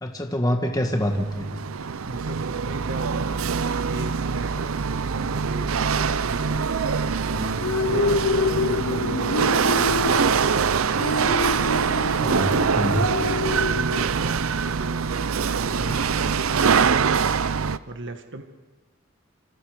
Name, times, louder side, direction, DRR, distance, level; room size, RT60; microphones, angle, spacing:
voice 1, 0.0-1.6 12.2-13.1 15.7-16.0, equal, 20° left, 3 dB, 1.6 m, -26 dB
Chatter / Hiss / Rattle, 0.9-17.8, right 6 dB, 80° right, 0.6 m, -24 dB
voice 2, 2.1-3.4 3.9-4.8 5.1-6.8 7.3-10.5 11.2-11.6 12.2-17.4 17.9-18.4, right 1 dB, 60° right, 6 dB, 1.8 m, -36 dB
sound 1, 7.4-14.4, left 3 dB, 80° left, 0.8 m, -27 dB
27.5 x 26.5 x 5.1 m, 1.3 s
head